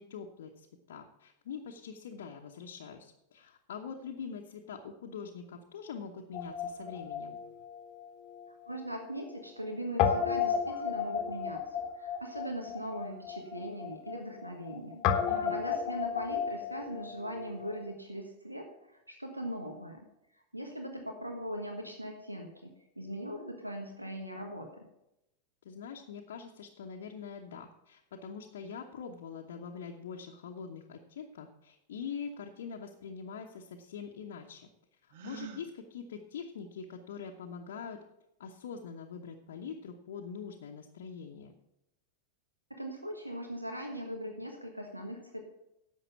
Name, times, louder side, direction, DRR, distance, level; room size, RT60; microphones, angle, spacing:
voice 1, 0.0-7.4 15.3-15.6 25.6-34.7 35.0-38.0 38.4-41.5, left 6 dB, 60° left, 1 dB, 1.0 m, -44 dB
Guitar, 6.3-8.8 9.0-9.1 10.0-17.8, left 7 dB, 40° left, 1.2 m, -33 dB
voice 2, 8.6-11.6 11.9-20.1 20.5-24.9 42.7-45.5, equal, 85° right, 3 dB, 1.4 m, -40 dB
Gasp, 35.1-35.7, right 8 dB, 50° right, 1.2 m, -45 dB
11.0 x 7.6 x 5.9 m, 0.88 s
figure-of-eight pair, 90°, 0 cm